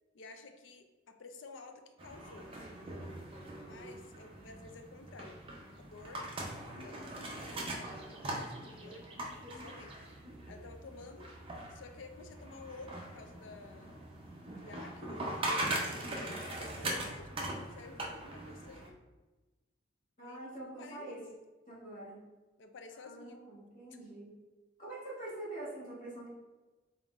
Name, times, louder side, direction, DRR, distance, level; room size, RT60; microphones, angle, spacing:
voice 1, 0.1-2.5 3.6-6.3 6.8-9.0 9.3-9.9 10.5-11.3 11.7-14.1 14.6-15.3 15.9-19.0 20.2-21.2 22.6-23.4, left 3 dB, 70° left, 6 dB, 0.4 m, -52 dB
sound 1, 2.0-18.9, right 1 dB, 30° right, 0.6 m, -41 dB
voice 2, 20.2-21.2 21.7-22.2 23.0-24.3 24.8-26.3, right 1 dB, 40° left, -8 dB, 1.4 m, -45 dB
3.9 x 3.8 x 2.4 m, 1.2 s
head